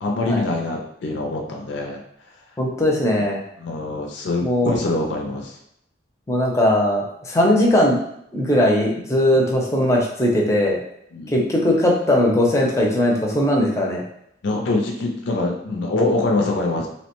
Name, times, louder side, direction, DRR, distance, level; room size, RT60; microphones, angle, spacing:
voice 1, 0.0-2.0 3.2-3.3 3.6-5.5 11.1-11.4 14.4-16.9, left 2 dB, 70° left, 0 dB, 0.4 m, -24 dB
voice 2, 2.6-3.4 4.4-4.8 6.3-8.0 8.3-10.8 11.3-14.0, left 1 dB, 15° left, -1 dB, 0.5 m, -19 dB
2.8 x 2.1 x 2.9 m, 0.75 s
head